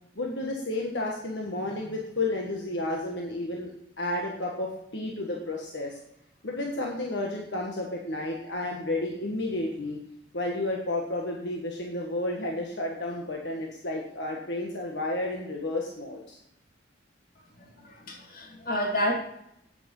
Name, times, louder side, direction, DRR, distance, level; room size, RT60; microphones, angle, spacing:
voice 1, 0.1-6.0 6.4-10.0 10.3-16.4, left 2 dB, 70° left, 0 dB, 1.6 m, -32 dB
voice 2, 17.6-19.2, equal, 50° left, 1 dB, 2.4 m, -30 dB
9.2 x 8.6 x 5.6 m, 0.78 s
head